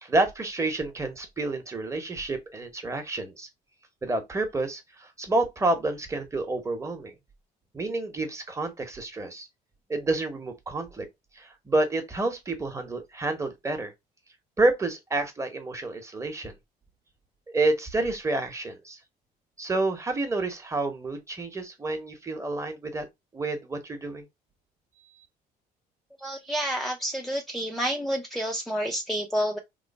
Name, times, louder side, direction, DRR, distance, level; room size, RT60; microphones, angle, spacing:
voice 1, 0.0-3.5 4.0-7.1 7.7-9.5 9.9-11.1 11.4-13.9 14.6-16.5 17.5-19.0 19.6-23.1 23.3-24.3, right 2 dB, 15° right, 0.9 m, -29 dB
voice 2, 26.2-29.6, equal, ahead, 0.4 m, -29 dB
3.1 x 2.0 x 4.0 m
cardioid pair, 110°, 17 cm